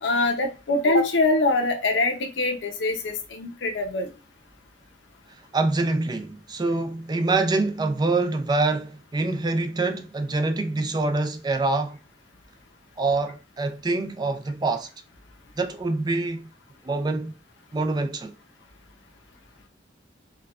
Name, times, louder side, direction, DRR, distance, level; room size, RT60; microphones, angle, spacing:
voice 1, 0.0-4.1, left 2 dB, 80° left, 0.6 m, -23 dB
voice 2, 5.5-12.0 13.0-14.9 15.6-16.5 16.8-17.3 17.7-18.3, right 3 dB, 20° right, 0.4 m, -25 dB
4.5 x 2.2 x 2.3 m
head